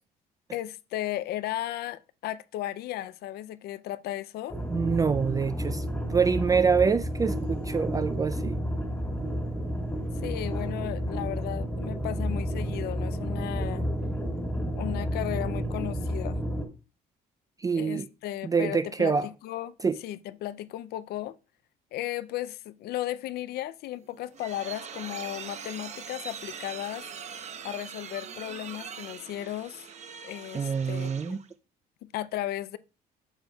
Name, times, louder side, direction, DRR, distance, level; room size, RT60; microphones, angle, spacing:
voice 1, 0.5-4.6 10.2-13.9 14.8-16.4 17.7-21.4 21.9-27.1 27.6-29.9 30.2-31.4 32.0-32.8, left 13 dB, 70° left, 0.5 m, -35 dB
sound 1, 4.5-16.7, equal, 5° left, 1.7 m, -31 dB
voice 2, 4.7-5.8 6.1-8.6 17.6-18.1 18.4-19.3 19.8-20.0 30.5-31.4, right 5 dB, 20° right, 0.3 m, -25 dB
sound 2, 24.0-31.5, right 7 dB, 40° right, 0.8 m, -42 dB
9.1 x 6.7 x 2.3 m
cardioid pair, 110°, 17 cm